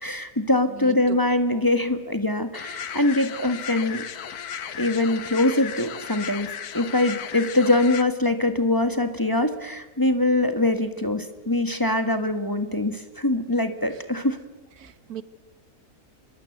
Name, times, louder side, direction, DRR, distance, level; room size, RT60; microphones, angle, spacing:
voice 1, 0.0-4.0 4.8-14.4, left 2 dB, 15° left, 7 dB, 1.6 m, -23 dB
voice 2, 0.8-1.2 14.8-15.2, right 10 dB, 85° right, 14 dB, 1.7 m, -38 dB
sound 1, 2.5-8.0, left 8 dB, 85° left, 1.6 m, -35 dB
25.0 x 23.0 x 8.0 m, 1.1 s
omnidirectional pair, 1.6 m